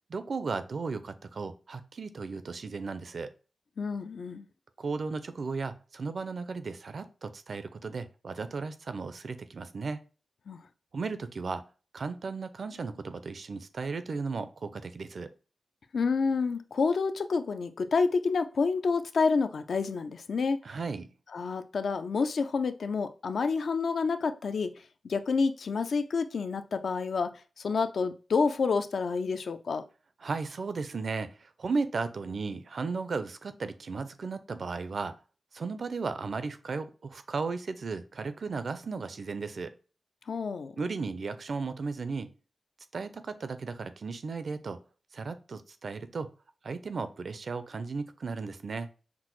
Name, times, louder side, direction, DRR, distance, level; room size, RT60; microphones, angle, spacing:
voice 1, 0.1-3.3 4.8-10.0 10.9-11.6 11.9-15.3 20.6-21.1 30.2-35.1 35.5-39.7 40.8-42.3 42.9-44.8 45.1-46.3 46.6-48.9, right 4 dB, 55° right, 0.4 m, -35 dB
voice 2, 3.8-4.5 10.5-10.6 15.9-20.6 21.3-24.7 25.0-29.8 40.3-40.7, left 4 dB, 70° left, 0.4 m, -29 dB
5.8 x 2.0 x 3.0 m
wide cardioid pair, 125°, 0 cm